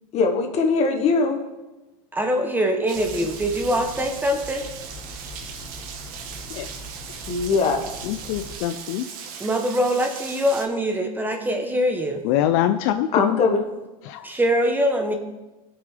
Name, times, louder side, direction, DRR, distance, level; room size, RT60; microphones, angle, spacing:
voice 1, 0.1-1.4 7.3-7.8 13.1-13.7, left 4 dB, 35° left, 5 dB, 1.4 m, -21 dB
voice 2, 2.1-4.7 9.4-12.2 14.2-15.2, equal, 10° right, 4 dB, 0.9 m, -23 dB
sound 1, 2.9-8.6, equal, 10° left, 1.5 m, -41 dB
Rain, 2.9-10.7, right 7 dB, 50° right, 1.3 m, -38 dB
voice 3, 8.1-9.0 12.2-13.3 14.1-14.3, left 12 dB, 55° left, 9 dB, 0.5 m, -24 dB
16.5 x 6.2 x 3.3 m, 1.1 s
supercardioid pair, 130°, 19 cm